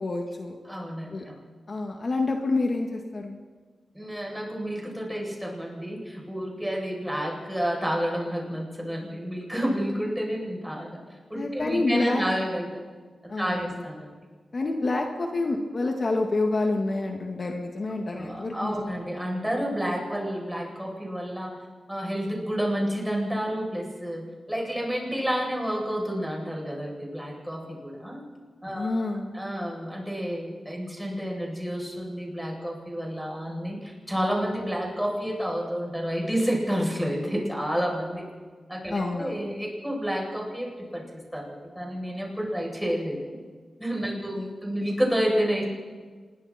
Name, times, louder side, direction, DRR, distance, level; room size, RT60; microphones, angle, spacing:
voice 1, 0.0-0.6 1.1-1.2 1.7-3.4 11.4-12.2 13.3-13.8 14.5-18.9 28.7-29.3 38.9-39.4 44.1-44.5, left 2 dB, 45° left, 2 dB, 2.1 m, -28 dB
voice 2, 0.6-1.3 3.9-11.0 11.3-12.7 13.4-14.1 18.1-21.5 21.9-28.2 28.6-38.2 38.7-43.4 43.8-45.6, equal, 5° right, -2 dB, 7.9 m, -30 dB
27.0 x 22.5 x 4.5 m, 1.5 s
cardioid pair, 80°, 0 cm